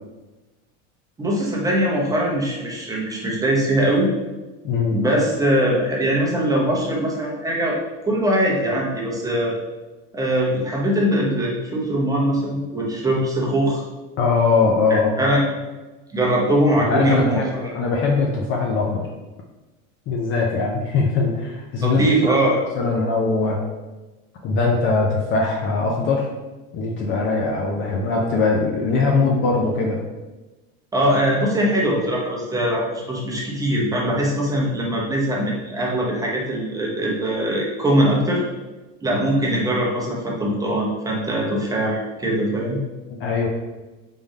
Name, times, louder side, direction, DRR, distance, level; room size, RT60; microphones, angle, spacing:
voice 1, 1.2-4.1 4.9-7.8 8.1-9.6 10.1-13.8 14.9-15.5 16.1-17.7 21.8-22.7 30.9-38.4 39.0-42.8, right 1 dB, 10° right, -3 dB, 0.8 m, -21 dB
voice 2, 4.6-5.0 14.2-15.1 16.9-17.5 17.7-19.1 20.1-22.3 22.8-23.6 24.4-26.3 26.7-30.0 43.2-43.5, left 4 dB, 30° left, 0 dB, 0.5 m, -21 dB
3.6 x 3.5 x 4.0 m, 1.1 s
supercardioid pair, 135°, 39 cm